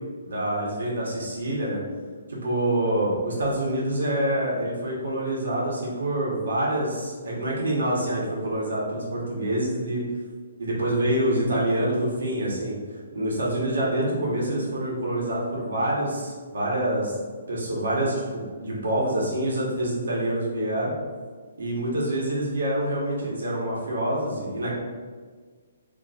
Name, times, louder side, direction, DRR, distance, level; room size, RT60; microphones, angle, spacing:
voice 1, 0.2-1.8 2.3-10.1 10.6-12.8 13.1-17.1 17.5-20.9 21.6-24.7, right 1 dB, 80° right, -5 dB, 1.2 m, -26 dB
4.0 x 2.9 x 2.5 m, 1.6 s
hypercardioid pair, 180°, 0 cm